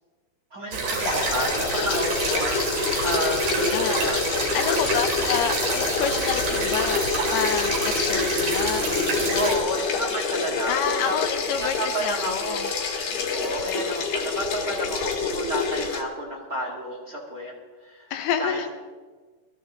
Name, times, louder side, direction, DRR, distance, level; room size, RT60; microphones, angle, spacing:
voice 1, 0.5-4.2 4.5-5.0 9.3-11.1 11.6-17.5 17.8-18.1 18.4-18.6, right 1 dB, 30° right, -4 dB, 1.8 m, -31 dB
sound 1, 0.7-9.5, right 3 dB, 70° right, 5.3 m, -28 dB
sound 2, 1.0-16.0, left 5 dB, 55° left, 3.1 m, -27 dB
voice 2, 3.7-4.1 4.5-7.0 7.3-9.5 10.7-12.7 13.1-13.6 18.1-18.7, left 8 dB, 75° left, 8 dB, 2.7 m, -29 dB
23.5 x 14.5 x 3.9 m, 1.4 s
omnidirectional pair, 4.9 m